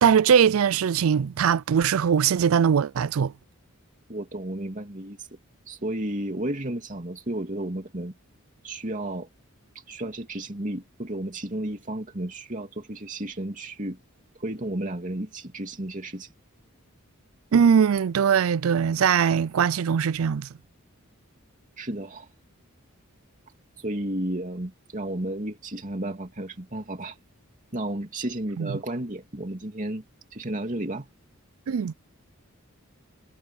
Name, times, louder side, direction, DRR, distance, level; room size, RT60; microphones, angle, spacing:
voice 1, 0.0-3.3 17.5-20.5 28.6-28.7 31.7-31.9, right 7 dB, 70° right, 0.4 m, -21 dB
voice 2, 4.1-5.2 5.7-8.1 8.6-9.3 9.9-14.0 14.4-16.3 21.8-22.3 23.8-27.2 27.7-30.0 30.3-31.1, right 1 dB, 35° right, 2.8 m, -32 dB
head